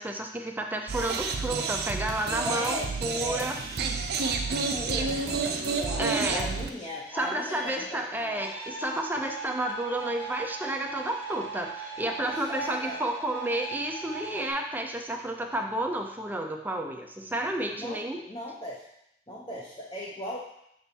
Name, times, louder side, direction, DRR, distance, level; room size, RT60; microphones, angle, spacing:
voice 1, 0.0-3.6 6.0-6.5 7.1-18.2, right 1 dB, 10° right, 3 dB, 0.5 m, -31 dB
sound 1, 0.9-6.7, right 4 dB, 65° right, 0.5 m, -30 dB
voice 2, 2.4-3.5 4.7-8.5 12.3-13.0 17.7-18.0 18.3-18.8 19.3-20.4, equal, 25° left, -4 dB, 0.8 m, -38 dB
sound 2, 4.2-14.5, right 3 dB, 70° left, 1.4 m, -41 dB
7.0 x 3.4 x 4.2 m, 0.77 s
head